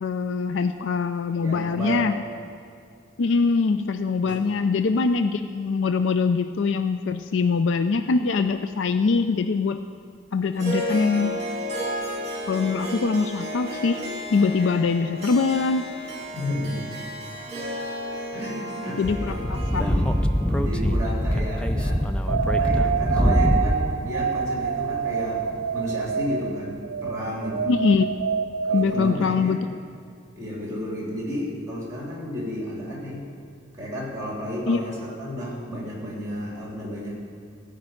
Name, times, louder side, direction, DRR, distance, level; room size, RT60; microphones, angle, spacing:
voice 1, 0.0-2.1 3.2-9.8 10.3-11.3 12.5-14.0 14.3-15.9 19.0-19.2 19.7-19.8 27.7-28.1 28.7-29.8 34.7-34.8, left 4 dB, 70° left, 9 dB, 0.4 m, -23 dB
voice 2, 1.4-2.1 4.2-4.4 16.3-16.9 18.3-19.4 19.7-20.0 20.5-22.0 22.4-25.4 25.7-27.7 28.7-29.6 30.3-33.3 33.7-37.1, equal, 15° right, -4 dB, 3.2 m, -32 dB
Harp, 10.5-23.1, equal, 30° right, 2.8 m, -34 dB
Speech / Wind, 19.0-23.9, equal, 5° left, 0.4 m, -23 dB
sound 1, 22.3-29.6, right 7 dB, 75° right, 0.4 m, -27 dB
15.5 x 5.3 x 8.9 m, 2.4 s
head